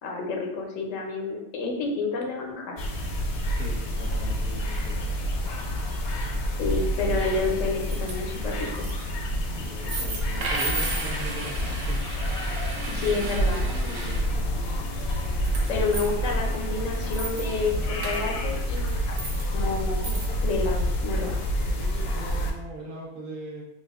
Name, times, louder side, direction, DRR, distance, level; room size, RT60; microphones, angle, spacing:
voice 1, 0.0-2.8 6.6-8.9 12.9-13.7 15.7-19.2 19.5-20.2 20.4-21.3, left 3 dB, 85° left, 1 dB, 1.0 m, -29 dB
sound 1, 2.8-22.5, equal, 60° left, 0.7 m, -28 dB
voice 2, 3.3-5.0 9.4-12.0 13.0-14.5 21.2-21.4 21.7-23.6, right 2 dB, 50° right, -3 dB, 1.0 m, -40 dB
sound 2, 7.8-8.1 8.5-9.0 9.8-14.2 14.9-16.1 16.5-16.6 16.8-17.5 18.0-18.2 18.7-19.5 20.0-20.3, right 2 dB, 80° right, 1.1 m, -34 dB
4.3 x 2.4 x 2.3 m, 0.88 s
omnidirectional pair, 1.3 m